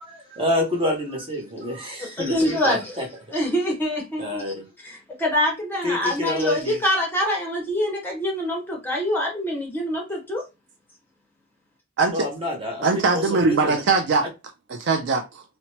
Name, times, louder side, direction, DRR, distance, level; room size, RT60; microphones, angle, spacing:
voice 1, 0.1-3.1 4.2-4.6 5.8-6.8 12.1-12.9 13.1-13.8, left 1 dB, 25° right, 0.8 m, -28 dB
voice 2, 2.0-2.9 3.3-4.5 4.8-10.4, left 1 dB, 10° left, 0.7 m, -25 dB
voice 3, 12.8-14.3 14.7-15.4, right 3 dB, 50° right, 0.4 m, -21 dB
2.9 x 2.1 x 2.8 m
head